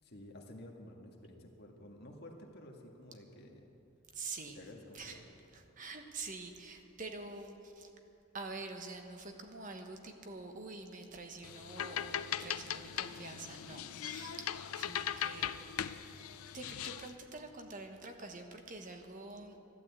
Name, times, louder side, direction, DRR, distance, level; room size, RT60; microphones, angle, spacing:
voice 1, 0.0-3.6 4.5-5.2, left 1 dB, 50° left, 1 dB, 1.8 m, -52 dB
voice 2, 4.1-4.6 4.9-5.2 5.5-7.9 8.3-15.5 16.5-19.6, right 3 dB, 35° right, 4 dB, 1.1 m, -46 dB
sound 1, 11.4-17.1, left 9 dB, 90° left, 0.5 m, -39 dB
13.0 x 12.0 x 8.4 m, 2.9 s
head